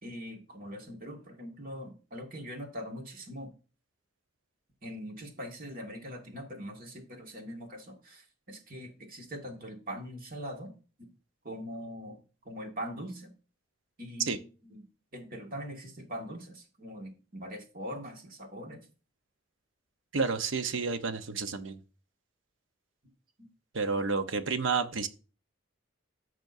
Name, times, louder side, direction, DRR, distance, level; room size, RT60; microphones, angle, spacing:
voice 1, 0.0-3.5 4.8-10.7 11.0-11.1 11.4-12.2 12.5-13.3 14.0-14.8 15.1-18.8, equal, 45° right, 2.0 m, -42 dB
voice 2, 20.1-21.8 23.7-25.1, right 4 dB, 75° right, 0.9 m, -30 dB
14.0 x 6.2 x 2.7 m
head